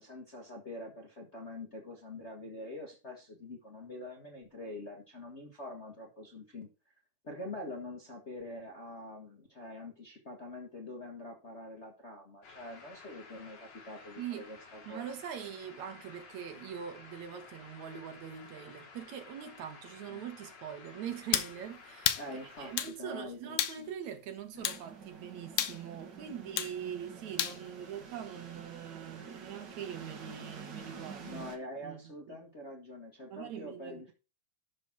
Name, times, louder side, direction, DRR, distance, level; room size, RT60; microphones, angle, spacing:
voice 1, 0.0-6.9 7.2-15.1 20.1-20.2 22.2-23.9 24.5-24.6 26.2-26.7 31.2-34.1, left 1 dB, 35° left, 1.0 m, -45 dB
sound 1, 12.4-22.8, left 4 dB, 65° left, 3.5 m, -53 dB
voice 2, 14.2-14.5 14.8-31.5 31.8-32.0 32.3-32.4 33.3-34.1, right 9 dB, 75° right, 2.7 m, -43 dB
sound 2, 21.3-21.5 22.1-22.3 22.8-23.0 23.6-23.8 24.6-24.8 25.6-25.8 26.6-26.7 27.4-27.6, left 11 dB, 80° left, 2.2 m, -30 dB
sound 3, 24.6-31.6, right 5 dB, 45° right, 1.8 m, -49 dB
12.0 x 4.2 x 5.9 m
omnidirectional pair, 3.4 m